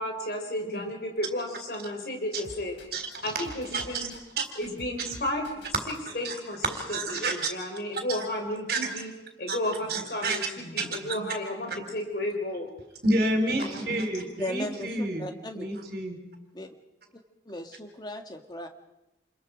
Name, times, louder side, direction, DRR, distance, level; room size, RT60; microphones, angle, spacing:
voice 1, 0.0-2.8 3.2-4.1 4.6-9.1 9.4-12.7 13.8-13.9, left 1 dB, 55° left, 3 dB, 3.9 m, -33 dB
sound 1, 2.4-3.2 3.4-6.0, left 1 dB, 85° left, 4.1 m, -46 dB
voice 2, 2.9-3.3 3.7-3.8 4.4-4.5 6.1-6.3 6.7-7.3 7.9-8.2 8.7-8.8 9.5-9.6 9.9-10.4 10.8-10.9 13.0-15.3 15.6-16.2, right 2 dB, 55° right, 5 dB, 4.1 m, -29 dB
voice 3, 14.4-15.7 16.5-16.7 17.5-18.7, left 1 dB, 25° left, 5 dB, 1.8 m, -37 dB
28.5 x 22.0 x 5.1 m, 0.98 s
head